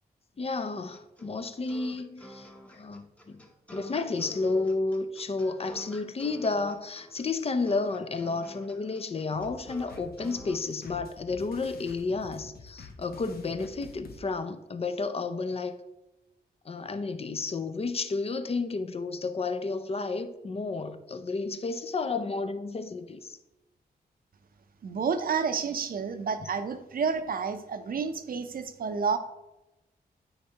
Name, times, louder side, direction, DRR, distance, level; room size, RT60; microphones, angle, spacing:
voice 1, 0.4-2.5 2.7-3.4 3.7-15.8 16.7-23.4 26.4-26.5, left 3 dB, 35° left, 0.5 m, -31 dB
sound 1, 0.9-10.6, left 1 dB, 10° left, 0.9 m, -47 dB
sound 2, 9.3-14.2, left 4 dB, 65° left, 0.9 m, -48 dB
voice 2, 24.8-29.2, right 5 dB, 60° right, 0.6 m, -30 dB
9.6 x 4.4 x 2.9 m
cardioid pair, 85°, 17 cm